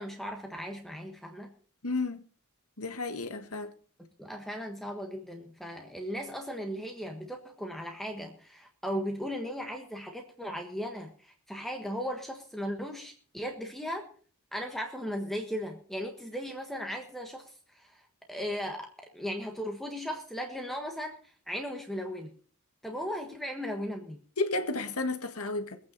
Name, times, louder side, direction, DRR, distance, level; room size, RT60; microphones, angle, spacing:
voice 1, 0.0-1.5 4.2-14.1 14.5-18.9 19.1-22.3 22.8-24.2, equal, ahead, 2 dB, 1.4 m, -37 dB
voice 2, 1.8-2.2 2.8-3.7 24.4-25.8, left 3 dB, 80° left, 6 dB, 1.8 m, -32 dB
22.0 x 8.9 x 4.1 m, 0.44 s
head